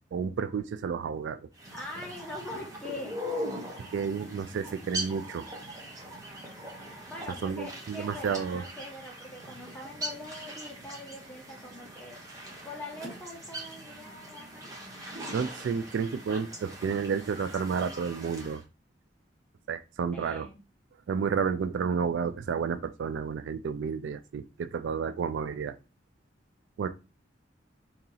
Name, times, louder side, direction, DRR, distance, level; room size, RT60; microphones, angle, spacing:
voice 1, 0.1-1.4 3.9-5.5 7.4-8.6 15.3-18.6 19.7-20.5 21.1-25.8 26.8-26.9, right 6 dB, 75° right, 10 dB, 0.3 m, -31 dB
sound 1, 1.5-18.6, equal, 20° right, 0.9 m, -41 dB
voice 2, 1.7-3.2 7.1-12.2 12.6-14.7 20.1-20.6, left 2 dB, 5° left, -2 dB, 1.0 m, -43 dB
2.9 x 2.8 x 3.8 m, 0.30 s
head